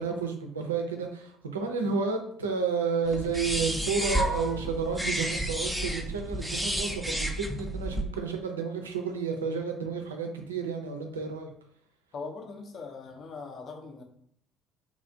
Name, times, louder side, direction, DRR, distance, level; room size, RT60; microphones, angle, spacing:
voice 1, 0.0-11.5, right 5 dB, 80° right, 4 dB, 0.4 m, -31 dB
sound 1, 3.1-8.0, right 1 dB, ahead, 0.4 m, -31 dB
voice 2, 12.1-14.0, left 4 dB, 45° left, 2 dB, 0.6 m, -41 dB
3.0 x 2.4 x 2.6 m, 0.69 s
figure-of-eight pair, 55°, 0 cm